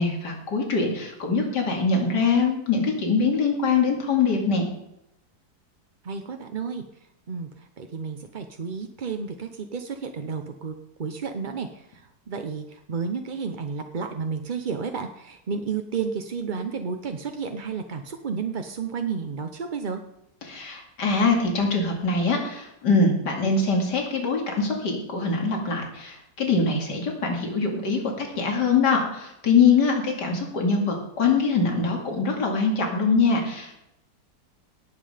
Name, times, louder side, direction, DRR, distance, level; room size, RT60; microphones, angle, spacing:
voice 1, 0.0-4.7 20.5-33.8, left 4 dB, 85° left, 2 dB, 2.9 m, -23 dB
voice 2, 6.0-6.8 7.3-20.0, right 5 dB, 45° right, 6 dB, 0.7 m, -32 dB
18.0 x 7.6 x 5.0 m, 0.84 s
omnidirectional pair, 1.8 m